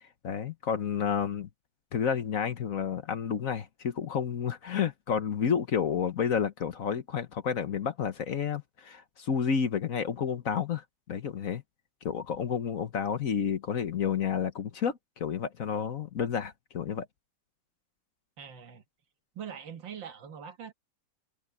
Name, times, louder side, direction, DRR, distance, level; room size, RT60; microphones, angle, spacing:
voice 1, 0.2-1.5 1.9-11.6 12.0-17.1, left 7 dB, 50° left, 1.3 m, -30 dB
voice 2, 18.4-18.8 19.4-20.7, right 8 dB, 90° right, 2.2 m, -42 dB
omnidirectional pair, 2.0 m